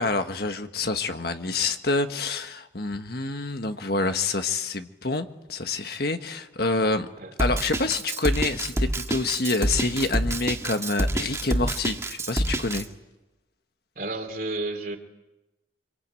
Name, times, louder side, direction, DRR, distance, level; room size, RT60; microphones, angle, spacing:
voice 1, 0.0-7.1 7.4-12.9, left 3 dB, 55° left, 7 dB, 1.6 m, -27 dB
Drum kit, 7.4-12.8, right 1 dB, 15° right, 1.8 m, -26 dB
voice 2, 13.9-15.0, right 2 dB, 50° right, 5 dB, 3.2 m, -31 dB
26.0 x 25.0 x 9.1 m, 1.0 s
head